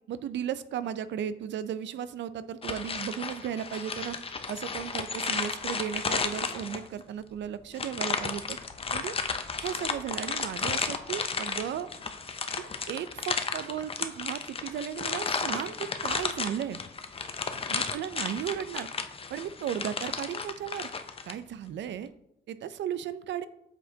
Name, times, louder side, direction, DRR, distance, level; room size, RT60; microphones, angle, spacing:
voice 1, 0.1-4.2 4.5-8.6 8.9-9.2 9.6-11.9 12.6-16.8 17.7-18.9 19.3-20.9 21.3-22.1 22.5-23.5, right 9 dB, 65° right, 14 dB, 0.5 m, -35 dB
sound 1, 2.6-7.0 7.7-21.3, left 5 dB, 30° left, 0.6 m, -33 dB
7.9 x 4.6 x 2.8 m, 0.79 s
cardioid pair, 90°, 20 cm